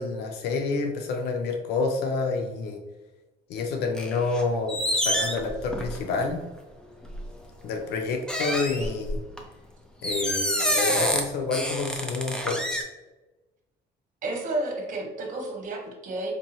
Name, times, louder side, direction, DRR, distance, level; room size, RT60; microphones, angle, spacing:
voice 1, 0.0-2.8 3.5-6.4 7.6-9.2 10.0-12.7, left 3 dB, 75° left, 3 dB, 0.5 m, -28 dB
sound 1, 4.0-4.4 4.7-6.2 7.0-7.2 8.3-9.4 10.0-11.2 11.5-12.8, equal, 5° left, 0.5 m, -27 dB
voice 2, 14.2-16.3, right 2 dB, 50° right, 2 dB, 1.0 m, -31 dB
4.3 x 2.7 x 2.9 m, 1.1 s
cardioid pair, 110°, 17 cm